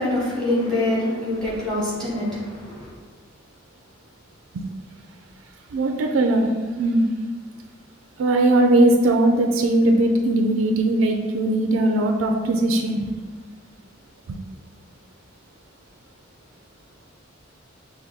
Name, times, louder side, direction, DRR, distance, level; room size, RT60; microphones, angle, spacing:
voice 1, 0.0-2.9, left 1 dB, 5° left, -7 dB, 1.3 m, -25 dB
voice 2, 5.7-6.5 6.8-7.1 8.2-13.1 14.3-14.4, right 1 dB, 80° right, 3 dB, 0.4 m, -19 dB
5.8 x 2.2 x 3.4 m, 1.4 s
head